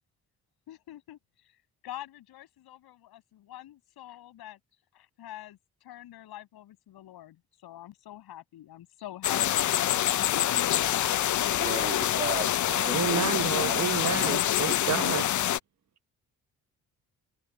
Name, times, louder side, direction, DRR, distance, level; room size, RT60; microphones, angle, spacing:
voice 1, 0.7-1.2 1.8-4.6 4.9-9.6 10.3-10.7, left 13 dB, 85° left, 7.0 m, -45 dB
sound 1, 9.2-15.6, left 12 dB, 50° left, 0.6 m, -26 dB
voice 2, 11.4-13.3 13.6-14.0, right 4 dB, 25° right, 1.7 m, -36 dB
voice 3, 12.9-15.3, right 8 dB, 45° right, 1.1 m, -30 dB
supercardioid pair, 60°, 37 cm